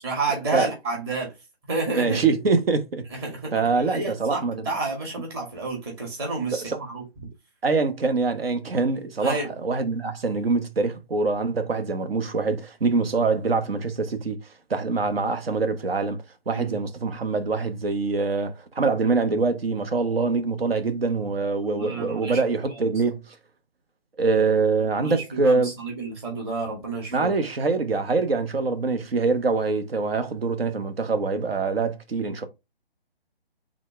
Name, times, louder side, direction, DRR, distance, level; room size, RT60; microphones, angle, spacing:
voice 1, 0.0-1.3 1.7-2.2 3.2-7.0 9.2-9.5 16.5-16.8 21.7-22.4 22.7-22.8 25.0-27.3, right 3 dB, 25° right, 2.1 m, -30 dB
voice 2, 1.9-3.1 3.5-4.7 6.5-6.8 7.6-14.4 14.7-16.2 16.5-23.3 24.2-25.7 27.1-32.5, right 4 dB, 65° right, 1.1 m, -24 dB
4.2 x 3.7 x 3.2 m
hypercardioid pair, 160°, 31 cm